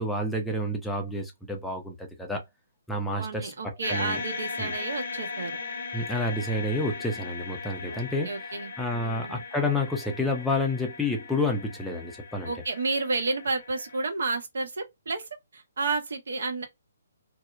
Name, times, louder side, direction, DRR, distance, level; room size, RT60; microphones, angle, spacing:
voice 1, 0.0-2.4 2.9-4.2 4.6-4.7 5.9-8.3 8.8-12.5, left 2 dB, 5° left, 0.5 m, -29 dB
voice 2, 3.2-5.6 7.9-9.4 12.4-16.7, right 3 dB, 75° right, 0.9 m, -31 dB
sound 1, 3.8-14.1, left 4 dB, 70° left, 0.9 m, -38 dB
2.7 x 2.0 x 2.3 m
hypercardioid pair, 150°, 0 cm